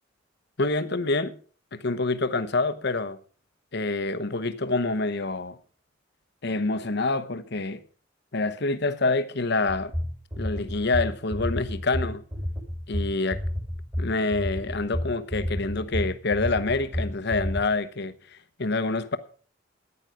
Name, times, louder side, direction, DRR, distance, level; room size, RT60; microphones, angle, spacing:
voice 1, 0.6-1.4 1.7-3.2 3.7-5.6 6.4-7.8 8.3-9.9 10.4-12.2 12.9-13.4 14.0-19.2, left 3 dB, 60° left, 1.0 m, -27 dB
sound 1, 9.7-17.6, left 1 dB, 20° right, 2.9 m, -30 dB
14.0 x 9.9 x 5.0 m
head